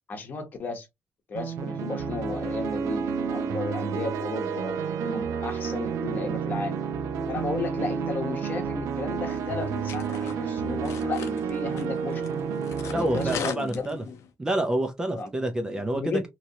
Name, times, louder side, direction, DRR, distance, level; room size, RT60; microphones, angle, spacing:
voice 1, 0.1-0.9 1.3-6.8 7.3-12.2 12.9-14.2 15.1-15.5 15.9-16.3, left 3 dB, 35° left, 0.9 m, -34 dB
sound 1, 1.3-13.4, right 6 dB, 80° right, 0.6 m, -30 dB
sound 2, 9.3-14.3, left 8 dB, 70° left, 0.6 m, -40 dB
voice 2, 12.9-14.0 14.4-16.3, right 1 dB, 15° right, 0.4 m, -28 dB
3.0 x 2.7 x 2.7 m
cardioid pair, 175°, 5 cm